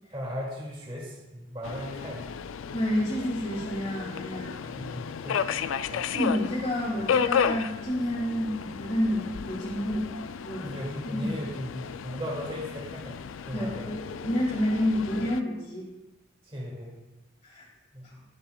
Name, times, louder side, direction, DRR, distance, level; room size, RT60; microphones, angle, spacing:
voice 1, 0.1-2.3 4.6-5.4 5.9-6.0 10.6-13.2 13.4-13.9 16.5-17.0 17.9-18.1, equal, 25° right, -4 dB, 2.2 m, -37 dB
Subway metro underground, 1.6-15.4, left 7 dB, 80° left, 0.4 m, -33 dB
voice 2, 2.7-4.7 6.1-10.1 10.4-10.7 11.1-11.3 13.5-15.9 17.4-17.6, equal, 35° left, -5 dB, 1.7 m, -29 dB
21.5 x 7.2 x 2.3 m, 1.0 s
head